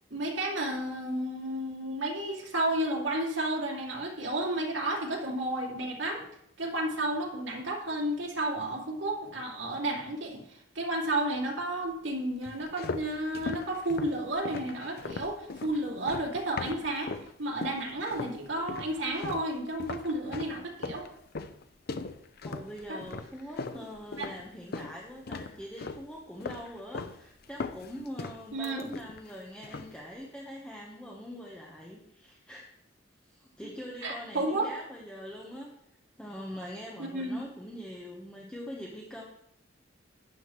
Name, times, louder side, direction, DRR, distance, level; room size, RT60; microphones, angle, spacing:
voice 1, 0.1-6.2 6.6-17.1 17.4-21.1 22.9-23.0 24.2-24.3 28.5-28.9 34.0-34.7 37.0-37.4, right 1 dB, 70° right, -2 dB, 2.6 m, -32 dB
sound 1, 12.4-17.3 17.6-18.4 18.7-25.0 25.3-26.1 26.4-27.2 27.4-29.3 29.6-30.0, left 3 dB, 55° left, 0.6 m, -39 dB
voice 2, 22.4-32.6 33.2-35.7 36.2-39.2, equal, 5° left, -3 dB, 1.2 m, -43 dB
12.0 x 9.4 x 3.2 m, 0.77 s
head